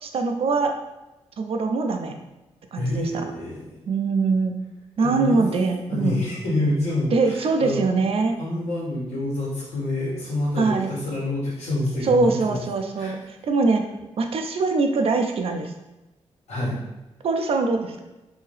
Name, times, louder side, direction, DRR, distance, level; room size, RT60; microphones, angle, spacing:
voice 1, 0.0-0.7 1.4-2.1 2.7-3.1 3.9-4.5 5.0-6.2 7.1-8.4 10.6-10.9 12.0-13.8 14.2-15.7 17.2-18.0, right 4 dB, 60° right, 5 dB, 0.4 m, -22 dB
voice 2, 2.7-3.8 5.0-5.4 5.9-7.8 8.4-12.6 13.0-13.1 16.5-16.8, left 1 dB, 80° left, -6 dB, 1.3 m, -27 dB
2.7 x 2.7 x 3.2 m, 1.0 s
cardioid pair, 90°, 11 cm